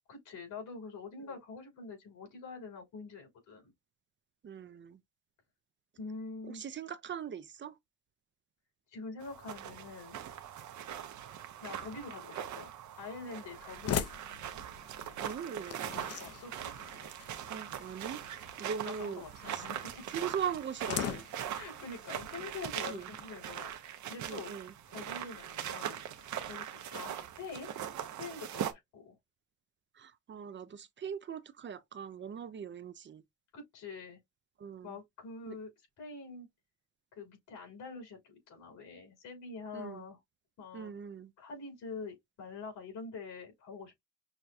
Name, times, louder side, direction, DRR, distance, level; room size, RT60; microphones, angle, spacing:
voice 1, 0.1-3.7 6.0-6.6 8.9-10.2 11.6-14.2 16.1-16.7 18.8-20.1 21.5-27.7 28.0-29.2 33.5-34.2 34.8-35.7 36.0-36.5 37.1-40.2 40.6-40.9 41.4-44.0, left 4 dB, 90° left, 3.2 m, -45 dB
voice 2, 4.4-5.0 6.5-7.8 15.2-15.8 17.5-18.2 18.6-19.2 19.5-19.7 20.1-21.2 22.9-23.1 24.3-24.7 29.9-33.2 34.6-35.0 35.5-35.6 39.7-40.1 40.7-41.3, right 7 dB, 40° right, 0.5 m, -40 dB
sound 1, 9.2-28.7, right 10 dB, 70° right, 0.9 m, -41 dB
sound 2, 12.9-23.0, left 9 dB, 55° left, 0.6 m, -43 dB
6.1 x 2.2 x 2.6 m
cardioid pair, 90°, 30 cm